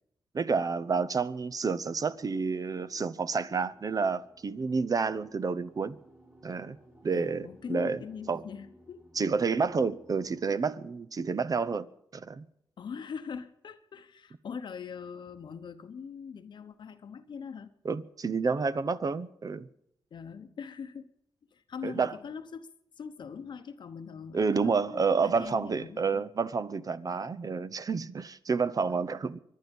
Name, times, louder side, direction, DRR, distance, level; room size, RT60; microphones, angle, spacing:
voice 1, 0.3-6.0 6.4-6.8 7.0-8.0 8.3-8.4 9.2-11.9 12.1-12.5 17.8-19.7 21.8-22.1 24.3-29.4, right 5 dB, 45° right, 0.8 m, -29 dB
sound 1, 1.8-10.6, right 1 dB, 25° right, 4.0 m, -58 dB
voice 2, 7.0-9.3 12.8-17.7 20.1-21.1 21.5-22.7 23.0-26.3 28.9-29.1, left 6 dB, 65° left, 0.9 m, -42 dB
24.5 x 10.5 x 5.3 m
cardioid pair, 70°, 8 cm